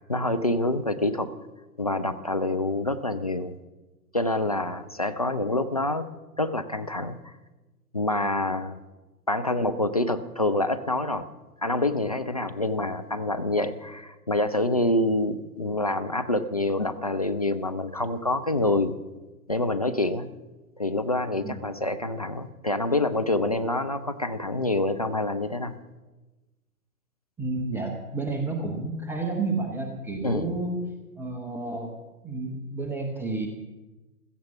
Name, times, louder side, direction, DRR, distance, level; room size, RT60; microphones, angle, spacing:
voice 1, 0.0-1.3 1.8-3.5 4.1-6.1 6.4-7.3 7.9-8.8 9.3-11.3 11.6-18.9 19.5-20.3 20.8-25.7 30.2-30.5, left 2 dB, 25° left, 7 dB, 0.4 m, -26 dB
voice 2, 27.4-30.8 31.2-32.0 32.2-33.5, right 3 dB, 5° right, 2 dB, 0.8 m, -30 dB
16.5 x 14.0 x 5.7 m, 1.1 s
figure-of-eight pair, 125°, 47 cm